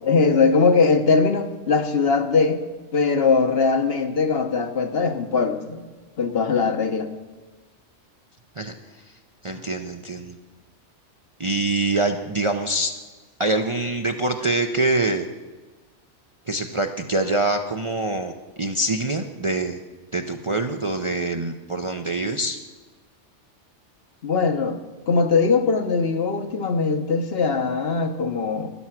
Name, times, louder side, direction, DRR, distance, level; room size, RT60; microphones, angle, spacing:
voice 1, 0.0-2.6 2.9-5.9 6.2-7.1 24.2-24.8 25.1-28.7, left 4 dB, 55° left, 7 dB, 1.1 m, -21 dB
voice 2, 9.4-10.4 11.4-12.9 13.4-15.3 16.5-18.3 18.6-19.8 20.1-22.6, right 2 dB, 35° right, 4 dB, 0.6 m, -24 dB
12.5 x 11.0 x 5.9 m, 1.3 s
omnidirectional pair, 1.2 m